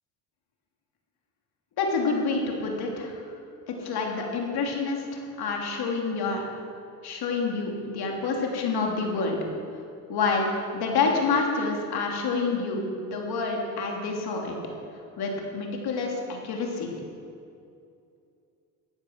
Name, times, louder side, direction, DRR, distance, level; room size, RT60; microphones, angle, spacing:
voice 1, 1.8-3.2 3.7-6.4 7.0-9.4 10.1-14.6 15.2-16.9, left 4 dB, 60° left, 0 dB, 3.1 m, -28 dB
14.5 x 9.4 x 6.4 m, 2.5 s
supercardioid pair, 80°, 43 cm